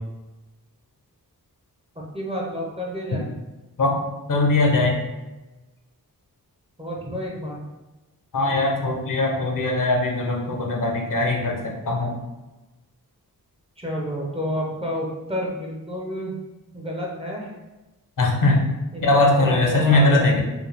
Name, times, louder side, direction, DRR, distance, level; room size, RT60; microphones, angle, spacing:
voice 1, 2.1-3.3 6.8-7.6 13.8-16.4 16.7-17.5 18.9-20.4, equal, 15° right, -3 dB, 0.6 m, -30 dB
voice 2, 4.3-5.0 8.3-12.2 18.2-18.7 19.0-20.4, left 2 dB, 55° left, 0 dB, 0.7 m, -20 dB
4.9 x 2.2 x 3.3 m, 1.1 s
wide cardioid pair, 170°, 37 cm